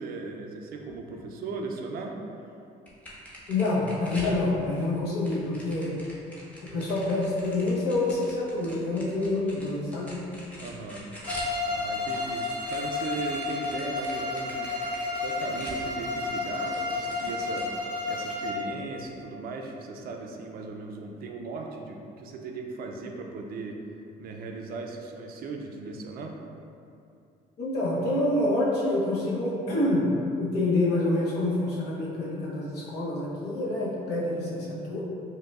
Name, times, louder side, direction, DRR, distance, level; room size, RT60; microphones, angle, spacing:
voice 1, 0.0-2.2 10.6-11.1 11.7-14.8 15.2-17.7 18.1-23.8 24.2-26.4, right 3 dB, 60° right, 2 dB, 0.4 m, -37 dB
sound 1, 2.9-4.9 5.2-11.5 11.8-16.3 16.7-17.6, equal, 10° left, 0.7 m, -44 dB
voice 2, 3.5-5.9 6.6-10.2 27.6-30.1 30.4-35.0, left 2 dB, 80° left, -6 dB, 0.9 m, -27 dB
Bowed string instrument, 11.3-18.7, left 3 dB, 50° left, 1.1 m, -31 dB
4.7 x 2.2 x 2.3 m, 2.6 s
cardioid pair, 110°, 17 cm